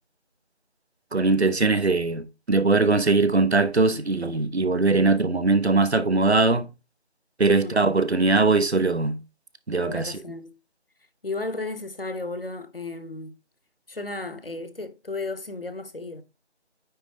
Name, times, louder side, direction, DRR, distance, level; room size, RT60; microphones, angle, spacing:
voice 1, 1.1-6.7 7.4-9.2 9.7-10.2, right 3 dB, 70° right, 1.0 m, -21 dB
voice 2, 9.9-10.5 11.2-13.3 13.9-16.2, left 3 dB, 55° left, 0.8 m, -34 dB
9.3 x 3.9 x 3.3 m
figure-of-eight pair, 170°, 34 cm